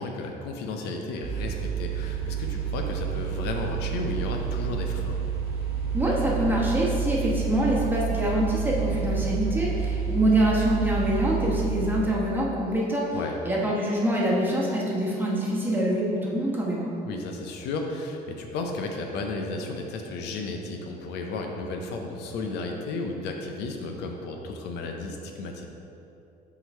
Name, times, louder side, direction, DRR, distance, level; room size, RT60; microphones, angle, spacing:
voice 1, 0.0-5.2 13.1-13.4 17.0-25.7, left 3 dB, 80° left, 2 dB, 0.6 m, -33 dB
sound 1, 1.2-12.0, right 6 dB, 70° right, 1.1 m, -29 dB
voice 2, 5.9-13.1 13.4-16.9, right 1 dB, 10° right, -4 dB, 1.2 m, -25 dB
5.8 x 3.9 x 4.3 m, 2.8 s
cardioid pair, 110°, 17 cm